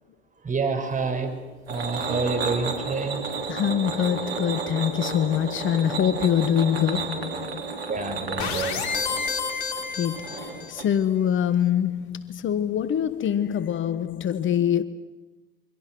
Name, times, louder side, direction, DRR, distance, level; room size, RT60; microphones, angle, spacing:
voice 1, 0.4-1.3 1.7-3.2 7.9-8.8, right 4 dB, 25° right, 5.3 m, -28 dB
sound 1, 0.9-10.8, right 4 dB, 85° right, 3.5 m, -33 dB
voice 2, 3.5-7.8 9.9-14.8, left 9 dB, 40° left, 1.3 m, -24 dB
sound 2, 8.4-10.8, left 5 dB, 65° left, 4.4 m, -30 dB
29.0 x 24.0 x 6.2 m
hypercardioid pair, 70°, 29 cm